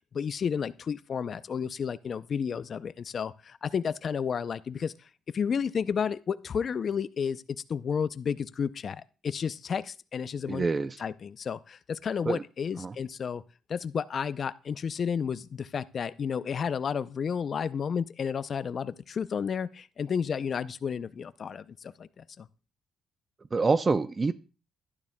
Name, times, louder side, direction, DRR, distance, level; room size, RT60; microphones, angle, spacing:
voice 1, 0.1-10.6 11.0-13.4 13.7-22.5, left 7 dB, 50° left, 15 dB, 0.5 m, -32 dB
voice 2, 10.5-11.0 12.3-12.4 12.8-12.9 23.5-24.3, right 4 dB, 30° right, 14 dB, 0.4 m, -26 dB
12.0 x 10.5 x 2.2 m, 0.34 s
cardioid pair, 90°, 0 cm